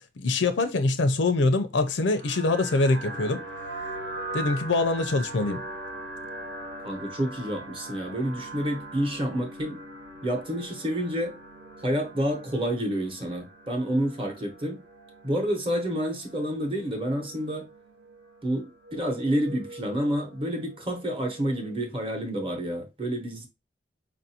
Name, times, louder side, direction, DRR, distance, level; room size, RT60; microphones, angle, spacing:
voice 1, 0.2-3.4 4.3-5.6, left 2 dB, 85° left, 0.5 m, -24 dB
sound 1, 2.1-21.8, right 1 dB, 80° right, 1.2 m, -41 dB
voice 2, 6.8-9.8 10.2-11.4 11.8-14.8 15.2-17.7 18.4-23.5, equal, 30° right, 0.9 m, -29 dB
4.9 x 2.6 x 2.7 m
head